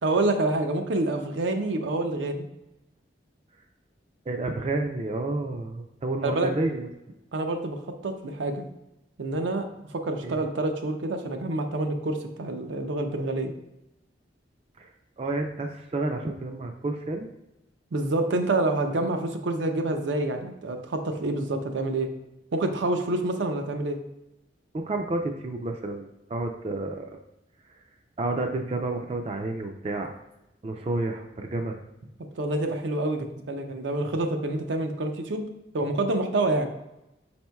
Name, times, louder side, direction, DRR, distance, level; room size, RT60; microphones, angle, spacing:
voice 1, 0.0-2.5 6.2-6.5 7.3-7.8 8.0-8.7 9.2-9.7 9.9-13.5 17.9-22.1 22.5-24.0 32.4-35.5 35.7-36.7, right 2 dB, 85° right, 5 dB, 0.5 m, -27 dB
voice 2, 4.3-6.9 10.2-10.4 14.8-14.9 15.2-17.3 24.7-27.2 28.2-30.2 30.6-31.8, right 2 dB, 35° right, 4 dB, 0.3 m, -30 dB
5.2 x 4.2 x 2.2 m, 0.91 s
head